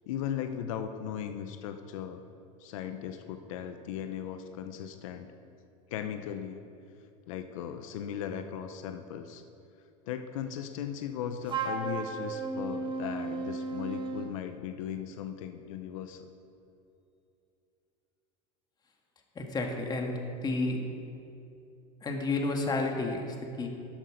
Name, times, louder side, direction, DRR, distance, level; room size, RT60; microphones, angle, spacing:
voice 1, 0.1-2.2 2.6-5.3 5.9-6.6 7.3-9.4 10.1-16.3, left 9 dB, 80° left, 8 dB, 0.7 m, -37 dB
Wind instrument woodwind instrument, 11.5-14.3, right 3 dB, 30° right, 1.4 m, -34 dB
voice 2, 19.4-20.8 22.0-23.7, left 2 dB, 25° left, 2 dB, 1.7 m, -31 dB
12.5 x 7.8 x 5.1 m, 2.7 s
supercardioid pair, 115°, 17 cm